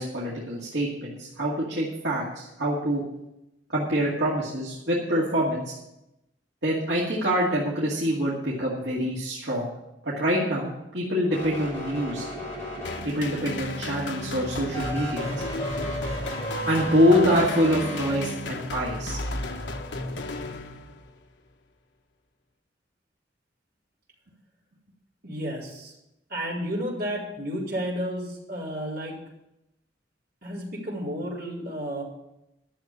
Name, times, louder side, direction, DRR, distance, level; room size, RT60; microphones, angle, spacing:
voice 1, 0.0-3.0 3.7-5.7 6.6-9.7 10.0-12.2 13.0-15.4 16.7-19.2, equal, 75° right, -6 dB, 2.4 m, -25 dB
sound 1, 11.2-13.4 14.7-18.1, right 1 dB, 15° left, 5.5 m, -34 dB
sound 2, 12.8-21.2, left 2 dB, 75° left, 1.3 m, -34 dB
voice 2, 25.2-25.9 26.3-29.2 30.4-32.0, equal, 55° right, -5 dB, 4.4 m, -32 dB
12.0 x 7.0 x 8.7 m, 0.89 s
head